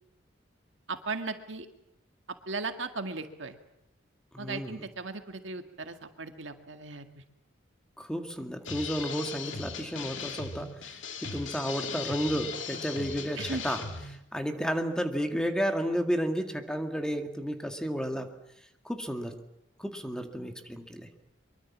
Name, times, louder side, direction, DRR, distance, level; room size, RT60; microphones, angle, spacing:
voice 1, 0.9-1.7 2.5-3.6 4.4-7.1 13.4-13.6, right 3 dB, 65° right, 7 dB, 1.9 m, -37 dB
voice 2, 4.3-4.8 8.0-10.9 11.2-13.8 14.3-18.3 18.8-19.4 19.8-21.1, equal, 5° left, 5 dB, 2.0 m, -32 dB
sound 1, 8.7-14.2, left 5 dB, 70° left, 2.7 m, -38 dB
24.0 x 23.5 x 7.3 m, 0.84 s
head